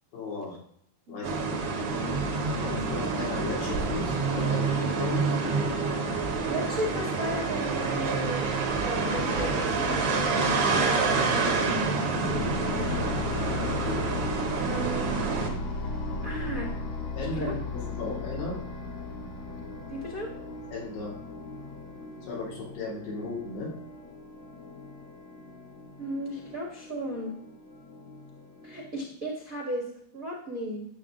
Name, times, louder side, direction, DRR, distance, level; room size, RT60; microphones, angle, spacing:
voice 1, 0.1-0.6 1.1-1.3 2.5-5.6 13.4-14.0 17.2-18.6 20.7-21.1 22.2-23.7, left 2 dB, 80° left, -4 dB, 5.0 m, -36 dB
voice 2, 1.1-1.4 1.9-2.2 6.3-8.4 8.8-13.0 14.6-15.2 15.8-16.0 16.2-16.7 17.3-17.5 19.8-20.3 26.0-27.3 28.6-30.8, equal, 65° right, -2 dB, 0.8 m, -35 dB
sound 1, 1.2-15.5, right 4 dB, 85° right, 1.3 m, -27 dB
sound 2, 12.2-28.9, left 2 dB, 60° left, 2.0 m, -37 dB
11.5 x 7.3 x 3.8 m, 0.68 s
omnidirectional pair, 4.8 m